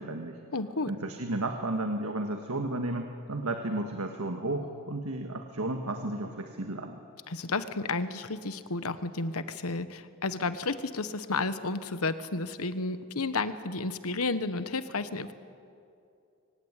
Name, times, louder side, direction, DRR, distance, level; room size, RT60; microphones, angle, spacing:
voice 1, 0.0-0.4 0.9-7.0, right 2 dB, 90° right, 5 dB, 1.6 m, -33 dB
voice 2, 0.5-0.9 7.3-15.3, left 3 dB, 85° left, 12 dB, 1.2 m, -32 dB
24.0 x 18.0 x 9.6 m, 2.5 s
head